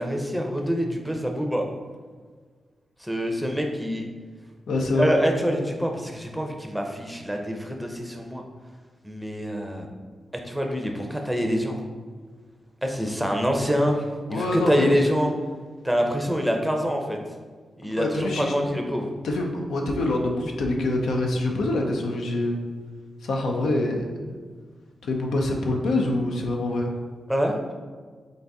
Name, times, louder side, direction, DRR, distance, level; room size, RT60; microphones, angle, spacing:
voice 1, 0.0-1.7 3.0-4.1 4.9-8.4 9.0-9.9 10.4-11.8 12.8-15.3 15.8-17.2 17.8-19.1 27.3-27.5, equal, ahead, 2 dB, 0.6 m, -25 dB
voice 2, 4.7-5.1 14.3-14.9 18.0-18.5 19.2-22.6 23.2-24.3 25.0-26.9, left 2 dB, 90° left, 1 dB, 0.5 m, -25 dB
3.9 x 3.9 x 3.5 m, 1.5 s
cardioid pair, 80°, 0 cm